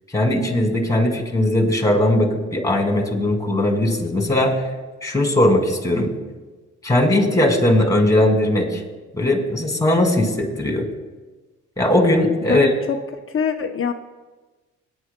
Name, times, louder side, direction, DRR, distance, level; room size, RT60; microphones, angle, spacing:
voice 1, 0.1-4.6 5.0-6.1 6.8-8.8 9.1-10.9 11.8-12.7, left 1 dB, 10° left, 2 dB, 2.4 m, -19 dB
voice 2, 12.5-13.9, left 7 dB, 45° left, 6 dB, 0.8 m, -25 dB
20.0 x 10.0 x 2.2 m, 1.3 s
cardioid pair, 90°, 30 cm